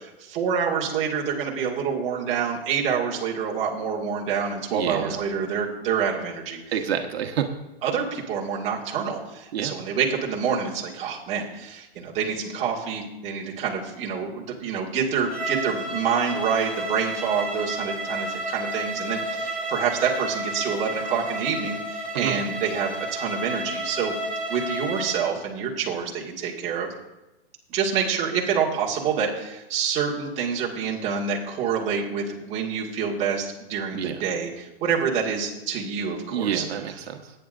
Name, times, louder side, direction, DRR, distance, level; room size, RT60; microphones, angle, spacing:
voice 1, 0.0-6.6 7.8-24.1 24.5-26.9 27.7-36.6, right 6 dB, 20° right, -3 dB, 1.9 m, -27 dB
voice 2, 4.7-5.2 6.7-7.5 9.5-9.7 22.1-22.4 33.9-34.2 36.3-37.3, right 8 dB, 80° right, 4 dB, 1.2 m, -28 dB
Bowed string instrument, 15.2-25.3, right 1 dB, 5° left, 1.5 m, -31 dB
19.0 x 9.4 x 2.6 m, 0.99 s
hypercardioid pair, 160°, 30 cm